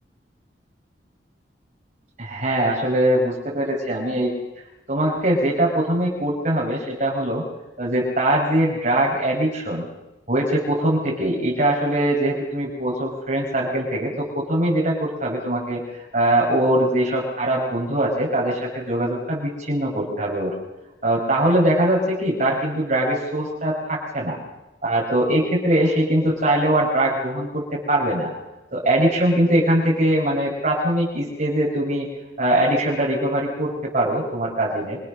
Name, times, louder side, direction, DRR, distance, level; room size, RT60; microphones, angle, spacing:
voice 1, 2.2-4.3 4.9-7.4 7.8-9.9 10.3-20.5 21.0-24.4 24.8-28.3 28.7-32.1 32.4-35.0, right 1 dB, 45° right, -4 dB, 5.4 m, -22 dB
27.0 x 24.0 x 6.6 m, 1.0 s
head